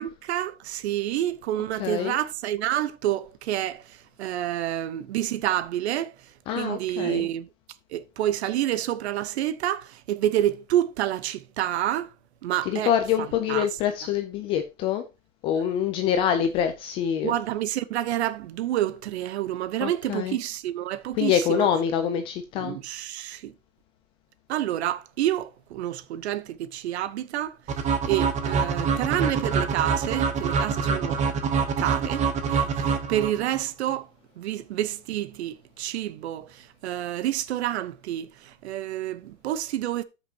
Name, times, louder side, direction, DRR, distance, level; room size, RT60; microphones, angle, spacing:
voice 1, 0.0-7.5 7.9-12.1 12.4-12.9 13.2-13.7 17.2-21.7 22.6-23.5 24.5-31.2 31.8-34.1 34.4-40.0, right 12 dB, 55° right, 1.0 m, -28 dB
voice 2, 1.8-2.2 6.5-7.3 12.7-15.0 15.4-17.3 19.8-20.4 21.2-22.8, left 9 dB, 15° left, 0.4 m, -25 dB
sound 1, 27.7-33.6, right 5 dB, 20° right, 1.0 m, -25 dB
13.0 x 6.0 x 2.8 m
hypercardioid pair, 135°, 40 cm